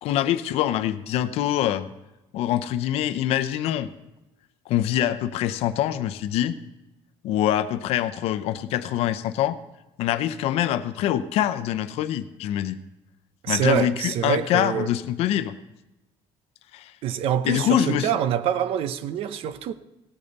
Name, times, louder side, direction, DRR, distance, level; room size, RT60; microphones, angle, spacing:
voice 1, 0.0-1.9 2.3-3.9 4.7-6.6 7.2-9.6 10.0-12.8 13.5-15.6 16.7-16.9 17.4-18.1, left 11 dB, 75° left, 0.7 m, -24 dB
voice 2, 13.4-14.9 17.0-19.7, right 9 dB, 65° right, 0.7 m, -25 dB
17.0 x 8.7 x 4.0 m
cardioid pair, 165°, 10 cm